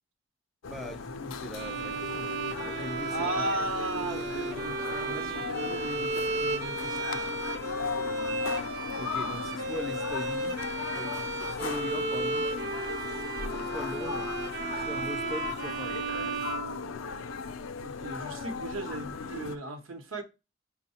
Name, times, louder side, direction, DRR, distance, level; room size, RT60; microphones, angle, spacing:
sound 1, 0.6-19.6, left 5 dB, 70° left, 0.4 m, -37 dB
voice 1, 0.6-2.3 2.6-3.5 9.0-10.6 10.9-12.4 13.6-14.3 14.8-16.0, left 1 dB, ahead, 0.4 m, -40 dB
Bowed string instrument, 1.5-17.4, right 3 dB, 55° right, 0.5 m, -34 dB
voice 2, 3.1-7.4 17.8-20.2, right 2 dB, 85° right, 0.8 m, -36 dB
5.4 x 2.0 x 4.1 m
head